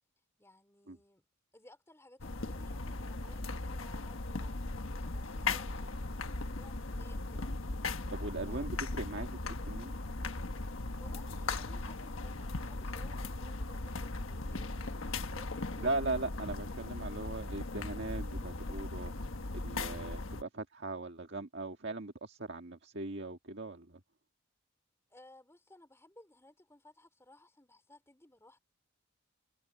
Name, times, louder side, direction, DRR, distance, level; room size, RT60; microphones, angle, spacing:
voice 1, 0.4-1.3 1.5-7.5 8.4-8.7 11.0-16.0 25.1-28.6, left 1 dB, 10° left, 3.8 m, -59 dB
sound 1, 2.2-20.4, left 3 dB, 75° left, 1.3 m, -38 dB
voice 2, 8.1-9.9 15.8-24.0, right 2 dB, 55° right, 1.8 m, -39 dB
head